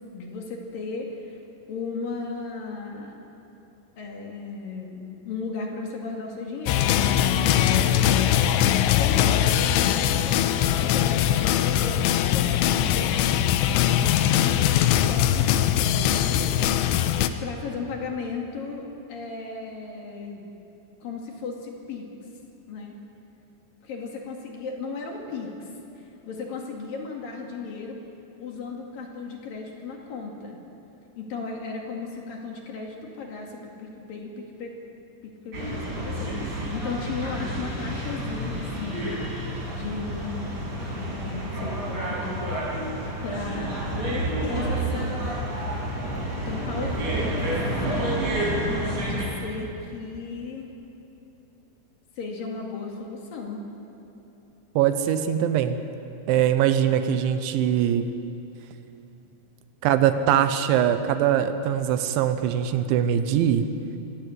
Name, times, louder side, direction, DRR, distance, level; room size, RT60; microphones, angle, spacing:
voice 1, 0.1-1.4 1.7-3.2 4.0-6.9 7.4-7.9 8.6-12.0 12.3-13.2 13.7-16.6 17.4-20.4 21.0-22.1 22.7-23.0 23.8-25.7 26.0-28.0 28.4-30.6 31.2-34.8 35.2-39.1 39.7-42.5 43.2-45.2 46.4-47.6 48.8-50.7 52.2-53.6, left 4 dB, 55° left, 0 dB, 3.4 m, -35 dB
sound 1, 6.7-17.3, left 11 dB, 85° left, 2.9 m, -21 dB
sound 2, 35.5-49.3, right 1 dB, 20° right, 6.1 m, -29 dB
voice 2, 54.8-55.8 56.3-58.0 59.8-63.6, right 10 dB, 80° right, 10 dB, 3.2 m, -22 dB
24.5 x 17.5 x 8.0 m, 2.9 s
omnidirectional pair, 5.5 m